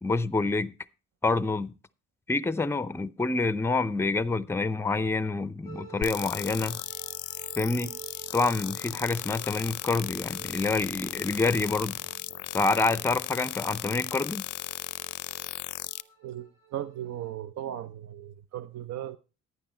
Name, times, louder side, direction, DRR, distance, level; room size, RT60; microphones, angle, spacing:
voice 1, 0.0-0.7 1.2-1.7 2.3-6.8 7.6-7.9 8.3-12.0 12.5-14.5, left 3 dB, 10° left, 0.5 m, -27 dB
sound 1, 5.6-17.3, right 7 dB, 80° right, 7.1 m, -50 dB
sound 2, 6.0-16.0, left 15 dB, 75° left, 0.6 m, -36 dB
sound 3, 10.2-13.8, right 2 dB, 35° right, 5.3 m, -51 dB
voice 2, 16.2-19.2, right 12 dB, 65° right, 0.7 m, -37 dB
11.5 x 9.4 x 4.3 m
cardioid pair, 90°, 30 cm